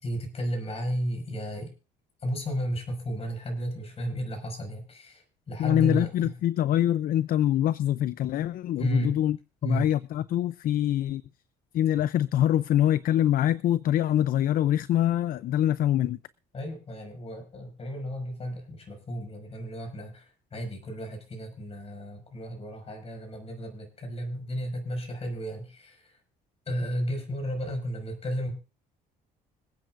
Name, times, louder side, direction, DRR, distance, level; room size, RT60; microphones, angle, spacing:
voice 1, 0.0-1.7 2.2-6.3 8.8-9.2 9.6-9.9 16.5-26.2 26.7-28.5, equal, 35° left, 5.7 m, -33 dB
voice 2, 5.6-9.4 9.6-11.2 11.7-16.2, left 11 dB, 60° left, 0.5 m, -24 dB
26.0 x 9.3 x 2.5 m
cardioid pair, 110°, 17 cm